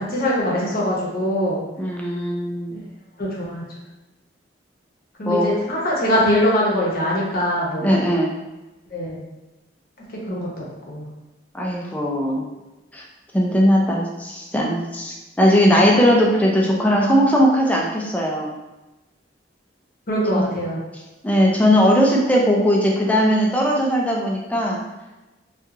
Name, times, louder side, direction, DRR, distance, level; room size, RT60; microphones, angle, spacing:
voice 1, 0.0-1.6 2.7-2.8 3.2-3.6 5.2-8.0 8.9-9.2 10.3-11.0 20.1-20.8, equal, 55° left, -5 dB, 0.8 m, -22 dB
voice 2, 1.8-2.8 5.3-5.5 7.8-8.3 11.5-12.5 12.9-13.0 13.3-18.5 20.3-20.5 21.2-24.8, equal, 10° left, -2 dB, 0.4 m, -19 dB
2.8 x 2.4 x 2.4 m, 1.1 s
head